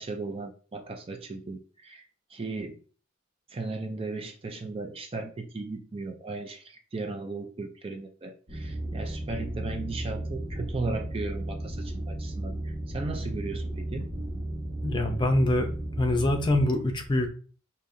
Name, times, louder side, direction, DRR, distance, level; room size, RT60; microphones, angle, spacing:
voice 1, 0.0-2.8 3.5-14.1, right 3 dB, 30° right, 5 dB, 0.4 m, -36 dB
sound 1, 8.5-16.6, right 1 dB, 45° right, 1.6 m, -34 dB
voice 2, 14.8-15.7 16.0-17.3, left 1 dB, 25° left, 4 dB, 0.6 m, -24 dB
5.2 x 2.8 x 2.6 m, 0.40 s
head